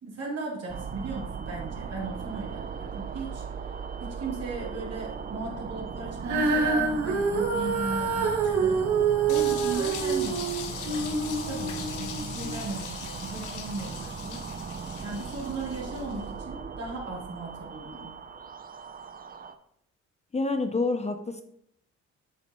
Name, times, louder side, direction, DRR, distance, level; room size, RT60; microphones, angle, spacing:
voice 1, 0.0-3.7 4.0-18.1, right 3 dB, 55° right, -4 dB, 3.3 m, -37 dB
sound 1, 0.7-19.5, right 5 dB, 30° right, 0.6 m, -38 dB
Female singing, 6.2-12.6 13.3-13.4, right 5 dB, 70° right, 1.9 m, -27 dB
sound 2, 9.3-16.1, left 8 dB, 80° left, 1.1 m, -40 dB
voice 2, 20.3-21.4, left 3 dB, 20° left, 7 dB, 0.6 m, -27 dB
8.8 x 6.4 x 3.1 m, 0.70 s
cardioid pair, 90°, 30 cm